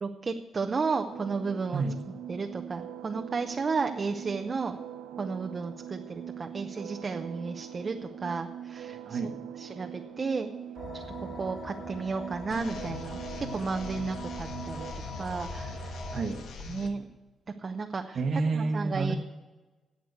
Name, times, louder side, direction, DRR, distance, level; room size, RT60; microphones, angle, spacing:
voice 1, 0.0-1.8 2.3-4.7 5.2-9.3 9.6-10.5 10.9-14.9 15.2-15.9 16.7-17.1 17.6-18.2 18.5-19.1, right 4 dB, 35° right, 5 dB, 0.7 m, -33 dB
sound 1, 0.6-14.9, right 9 dB, 90° right, 1.1 m, -42 dB
voice 2, 1.7-2.0 9.0-9.4 16.1-16.5 18.1-19.1, right 3 dB, 50° right, 5 dB, 1.1 m, -29 dB
sound 2, 10.8-16.2, left 2 dB, 50° left, 2.8 m, -42 dB
sound 3, 12.5-16.9, left 5 dB, 75° left, 1.7 m, -43 dB
12.5 x 8.0 x 8.0 m, 1.2 s
cardioid pair, 120°, 0 cm